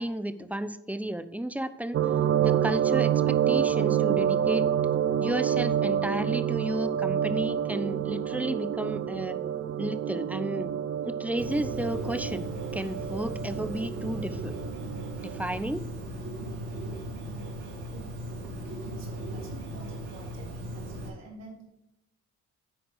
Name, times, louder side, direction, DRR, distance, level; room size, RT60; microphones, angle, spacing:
voice 1, 0.0-2.0 2.4-4.6 5.2-9.4 9.8-10.7 11.0-12.5 12.7-14.6 15.2-15.8, right 1 dB, 5° right, 12 dB, 0.6 m, -32 dB
sound 1, 1.9-15.7, right 9 dB, 45° right, 0.5 m, -28 dB
Bird, 11.4-21.1, right 1 dB, 75° right, 2.9 m, -37 dB
voice 2, 17.9-18.2 18.6-21.6, right 3 dB, 60° right, -1 dB, 3.7 m, -49 dB
10.5 x 4.2 x 5.9 m, 0.85 s
cardioid pair, 90°, 30 cm